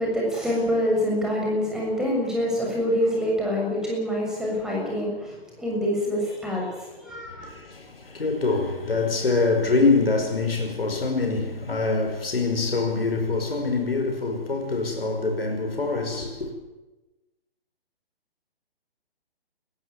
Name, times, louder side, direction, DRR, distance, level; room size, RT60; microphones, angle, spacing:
voice 1, 0.0-7.5, equal, ahead, 6.9 m, -26 dB
voice 2, 7.3-16.5, left 3 dB, 65° left, 5.3 m, -25 dB
21.0 x 15.5 x 9.8 m
figure-of-eight pair, 135°, 31 cm